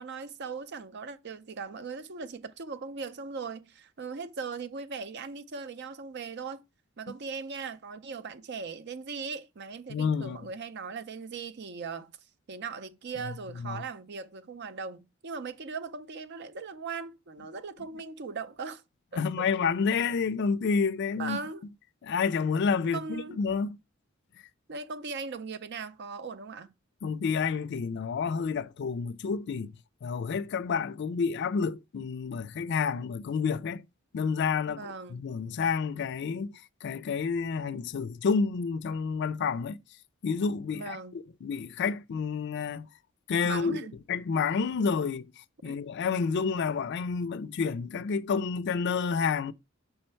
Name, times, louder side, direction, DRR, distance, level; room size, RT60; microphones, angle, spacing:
voice 1, 0.0-6.6 7.0-12.1 12.5-18.8 19.1-19.4 21.2-21.6 22.8-23.4 24.7-26.7 34.7-35.3 40.7-41.2 43.4-43.9 45.6-45.8, right 5 dB, 55° right, 0.6 m, -39 dB
voice 2, 9.9-10.4 13.6-13.8 19.2-21.4 22.0-23.8 27.0-29.7 30.0-33.8 34.1-36.5 36.8-39.8 40.2-41.0 41.4-42.9 43.3-43.8 44.1-45.3 45.6-49.5, left 5 dB, 60° left, 0.4 m, -29 dB
5.7 x 4.3 x 4.4 m
head